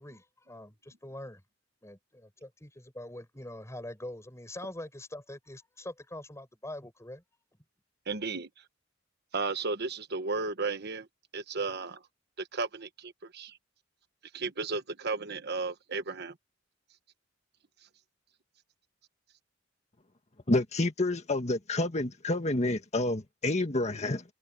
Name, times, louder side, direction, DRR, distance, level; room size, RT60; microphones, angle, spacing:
voice 1, 0.0-1.4 1.8-7.2, left 1 dB, 15° left, 6.8 m, -44 dB
voice 2, 8.1-8.6 9.3-11.1 11.3-12.0 12.4-13.6 14.3-16.4, right 4 dB, 55° right, 1.2 m, -34 dB
voice 3, 20.5-24.2, left 2 dB, 35° left, 1.8 m, -29 dB
head